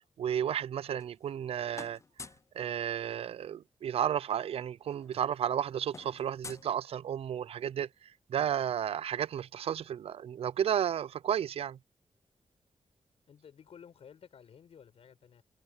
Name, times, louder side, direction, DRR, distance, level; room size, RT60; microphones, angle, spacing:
voice 1, 0.2-2.0 2.5-11.8, right 9 dB, 75° right, 0.4 m, -33 dB
sound 1, 0.7-1.5 1.7-2.5 3.9-4.0 4.3-4.5 4.7-7.4, left 4 dB, 30° left, 0.4 m, -50 dB
voice 2, 13.3-15.4, left 7 dB, 80° left, 4.9 m, -54 dB
cardioid pair, 90°, 10 cm